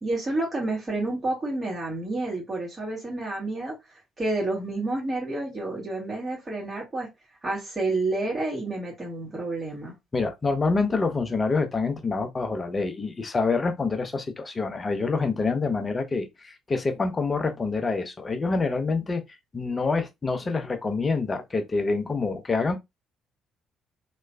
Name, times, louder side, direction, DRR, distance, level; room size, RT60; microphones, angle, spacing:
voice 1, 0.0-3.8 4.2-7.1 7.4-9.9, right 2 dB, 30° right, 1.8 m, -29 dB
voice 2, 10.1-19.2 19.5-22.8, left 4 dB, 30° left, 0.7 m, -26 dB
3.2 x 3.1 x 2.3 m
figure-of-eight pair, 45°, 0 cm